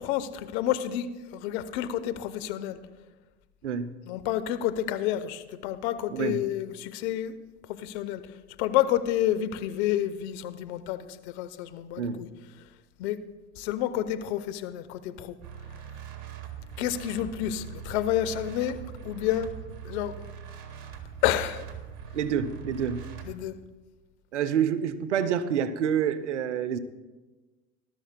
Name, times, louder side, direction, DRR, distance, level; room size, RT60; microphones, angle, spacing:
voice 1, 0.0-2.8 4.1-7.3 7.7-8.2 8.6-12.3 13.0-13.2 13.6-15.4 16.8-18.8 19.0-19.5 19.8-20.1 21.2-21.6 23.2-23.6, left 12 dB, 70° left, 0.9 m, -29 dB
voice 2, 3.6-4.0 6.1-6.5 12.0-12.3 22.1-23.1 24.3-26.8, right 8 dB, 90° right, 0.7 m, -28 dB
sound 1, 15.4-23.3, right 8 dB, 55° right, 1.8 m, -42 dB
19.5 x 12.5 x 2.2 m
hypercardioid pair, 75°, 34 cm